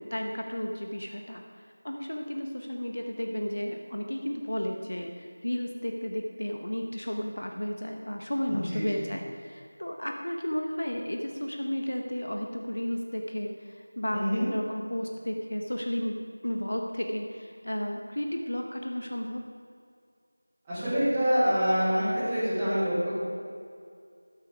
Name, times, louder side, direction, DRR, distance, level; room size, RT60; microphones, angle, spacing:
voice 1, 0.0-16.2 16.4-19.4, equal, 75° left, 2 dB, 1.2 m, -33 dB
voice 2, 8.7-9.0 14.1-14.4 20.7-23.1, equal, 10° right, -17 dB, 2.3 m, -26 dB
12.5 x 9.2 x 4.8 m, 2.3 s
figure-of-eight pair, 175°, 0 cm